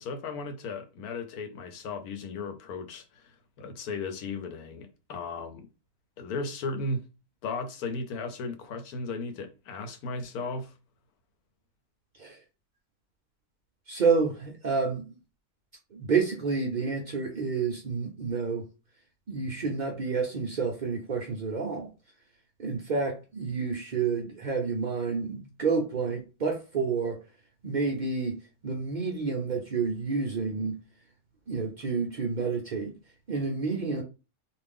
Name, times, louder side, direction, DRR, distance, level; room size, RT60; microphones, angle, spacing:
voice 1, 0.0-5.7 6.2-7.1 7.4-10.7, left 3 dB, 80° left, 1.1 m, -36 dB
voice 2, 13.9-15.0 15.9-18.6 19.3-21.9 22.6-27.2 27.6-28.4 28.6-30.8 31.5-32.9 33.3-34.0, right 4 dB, 75° right, 0.4 m, -29 dB
2.6 x 2.4 x 3.4 m
omnidirectional pair, 1.6 m